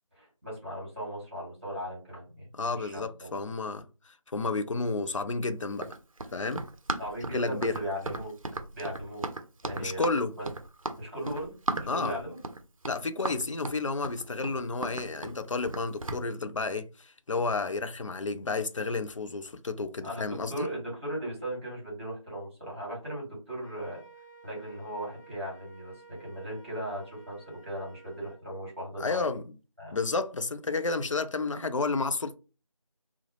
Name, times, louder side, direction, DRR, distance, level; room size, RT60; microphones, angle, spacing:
voice 1, 0.1-3.4 7.0-8.3 8.7-9.2 9.6-10.0 10.3-10.4 11.0-12.4 20.0-24.0 24.4-29.3 29.8-30.0, right 1 dB, 20° right, 1.6 m, -37 dB
voice 2, 2.6-5.9 6.3-6.6 7.3-7.8 9.8-10.3 11.9-12.2 12.9-20.7 29.0-29.4 29.9-32.3, left 3 dB, 60° left, 0.4 m, -31 dB
Run, 5.7-16.2, right 2 dB, 70° right, 0.5 m, -36 dB
Wind instrument woodwind instrument, 23.6-28.4, right 4 dB, 15° left, 1.2 m, -53 dB
2.9 x 2.0 x 2.9 m
figure-of-eight pair, 170°, 18 cm